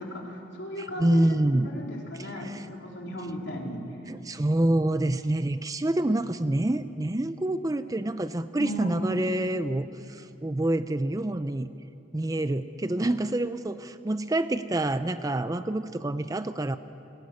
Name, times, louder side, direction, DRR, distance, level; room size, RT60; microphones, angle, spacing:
voice 1, 0.0-1.2 1.7-3.8 8.6-9.2, equal, 60° left, -1 dB, 3.7 m, -35 dB
voice 2, 0.8-1.8 2.2-2.7 4.1-11.7 12.1-16.8, right 1 dB, 20° right, 11 dB, 0.4 m, -27 dB
19.0 x 19.0 x 9.7 m, 2.7 s
head